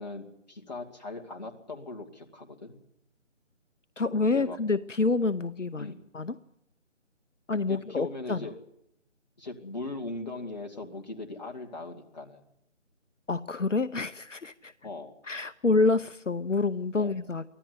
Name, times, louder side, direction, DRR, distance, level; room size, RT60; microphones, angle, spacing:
voice 1, 0.0-2.8 4.3-4.6 5.8-5.9 7.7-8.5 9.4-12.4 14.8-15.1 17.0-17.1, left 2 dB, 35° left, 2 dB, 2.5 m, -39 dB
voice 2, 4.0-6.4 7.5-8.5 13.3-14.7 15.2-17.4, left 3 dB, 70° left, 13 dB, 0.9 m, -27 dB
24.0 x 15.0 x 9.6 m, 0.79 s
figure-of-eight pair, 160°, 38 cm